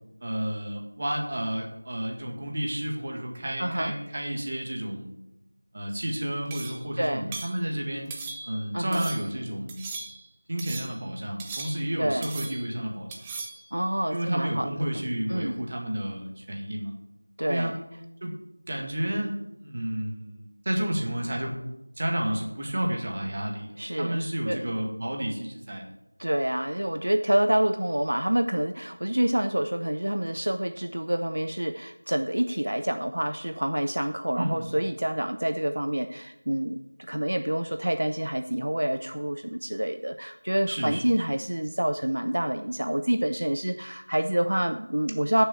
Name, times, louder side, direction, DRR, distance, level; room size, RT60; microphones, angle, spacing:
voice 1, 0.2-5.2 5.7-8.1 8.4-9.9 10.5-13.1 14.1-16.9 17.5-17.7 18.2-18.3 18.7-21.6 22.0-23.7 23.9-25.8 34.4-34.8 40.7-41.0, right 1 dB, 30° right, 1 dB, 1.8 m, -31 dB
voice 2, 3.6-3.9 7.0-7.3 8.7-9.1 12.0-12.3 13.7-14.7 15.3-15.7 17.4-17.8 23.8-24.6 26.2-45.4, right 1 dB, 60° right, 9 dB, 0.6 m, -27 dB
sound 1, 6.5-6.9 7.3-7.6 8.1-8.6 8.9-9.3 9.7-10.3 10.6-11.0 11.4-12.0 12.2-12.8 13.1-13.6, right 4 dB, 5° right, 0.5 m, -39 dB
11.0 x 6.9 x 7.2 m, 0.91 s
figure-of-eight pair, 175°, 0 cm